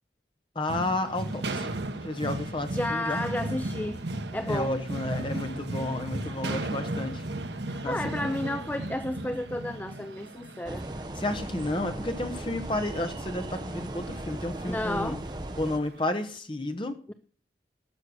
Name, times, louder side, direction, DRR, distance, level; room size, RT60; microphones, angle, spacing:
voice 1, 0.5-1.7 2.0-3.2 4.5-7.2 7.8-8.0 11.2-15.2 15.6-17.0, left 1 dB, 30° left, 7 dB, 1.1 m, -31 dB
sound 1, 0.7-16.0, right 2 dB, 80° right, 0.9 m, -36 dB
voice 2, 2.7-4.0 4.3-4.7 7.7-10.9 14.7-15.2, left 1 dB, 10° left, 9 dB, 0.4 m, -32 dB
sound 2, 10.6-15.8, right 1 dB, 25° right, 0.7 m, -37 dB
12.5 x 6.6 x 6.4 m, 0.43 s
head